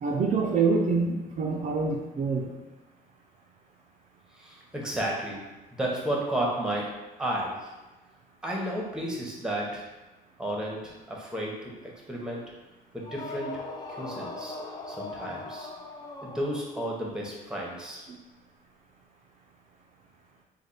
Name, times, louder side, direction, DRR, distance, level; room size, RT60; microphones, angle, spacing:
voice 1, 0.0-2.5, right 4 dB, 45° right, -1 dB, 0.4 m, -26 dB
voice 2, 4.3-5.4 5.7-7.7 8.4-9.9 10.4-12.5 12.9-13.6 14.0-14.5 14.9-15.7 16.2-18.0, right 1 dB, 5° right, -2 dB, 0.9 m, -32 dB
sound 1, 13.0-17.0, left 2 dB, 25° left, 0.5 m, -40 dB
3.3 x 2.2 x 4.0 m, 1.1 s
cardioid pair, 110°, 17 cm